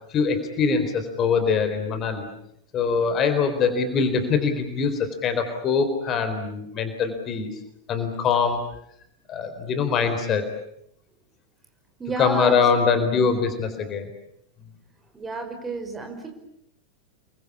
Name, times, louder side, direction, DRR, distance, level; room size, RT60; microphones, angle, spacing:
voice 1, 0.1-2.3 2.7-7.5 7.9-8.6 9.3-10.5 12.2-14.1, left 5 dB, 30° left, 8 dB, 4.1 m, -23 dB
voice 2, 12.0-13.3 15.1-16.3, right 3 dB, 15° right, 5 dB, 5.4 m, -32 dB
29.5 x 23.5 x 8.6 m, 0.74 s
figure-of-eight pair, 90°, 0 cm